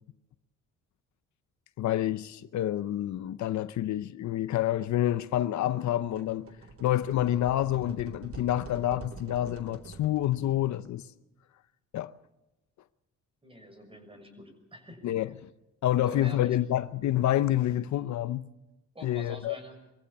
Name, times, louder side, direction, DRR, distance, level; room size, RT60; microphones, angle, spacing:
voice 1, 1.8-6.5 6.8-11.1 11.9-12.1 15.0-15.5 15.8-18.4 19.0-19.6, left 13 dB, 70° left, 0.8 m, -28 dB
sound 1, 6.0-10.9, right 3 dB, 50° right, 2.6 m, -46 dB
voice 2, 13.4-15.1 16.0-16.6 18.9-19.8, equal, 20° right, 6.4 m, -45 dB
23.5 x 15.5 x 7.1 m
cardioid pair, 90°, 30 cm